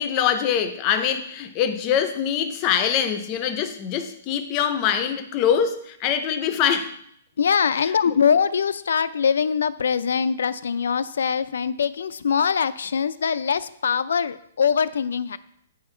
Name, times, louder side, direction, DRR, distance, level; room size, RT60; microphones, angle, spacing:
voice 1, 0.0-6.9 8.1-8.2, left 8 dB, 20° left, 10 dB, 0.5 m, -23 dB
voice 2, 7.4-15.4, left 6 dB, 80° left, 16 dB, 0.5 m, -23 dB
8.7 x 5.7 x 4.4 m, 0.71 s
hypercardioid pair, 180°, 0 cm